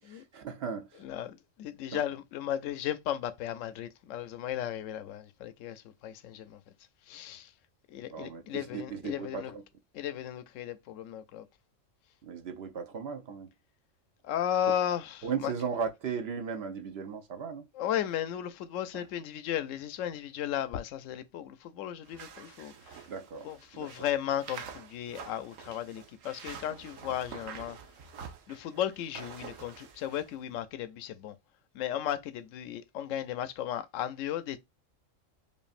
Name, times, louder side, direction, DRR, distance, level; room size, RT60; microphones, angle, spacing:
voice 1, 0.0-1.0 1.9-2.0 8.1-9.6 12.2-13.5 15.2-17.6 18.9-19.1 23.1-24.1, right 6 dB, 60° right, 0.7 m, -37 dB
voice 2, 1.0-6.6 7.1-7.5 7.9-9.5 9.9-11.5 14.2-15.5 17.8-23.0 23.4-27.8 28.5-31.3 31.7-34.6, left 10 dB, 80° left, 0.9 m, -35 dB
sound 1, 22.0-30.3, right 7 dB, 80° right, 1.1 m, -47 dB
5.2 x 2.5 x 2.5 m
omnidirectional pair, 1.3 m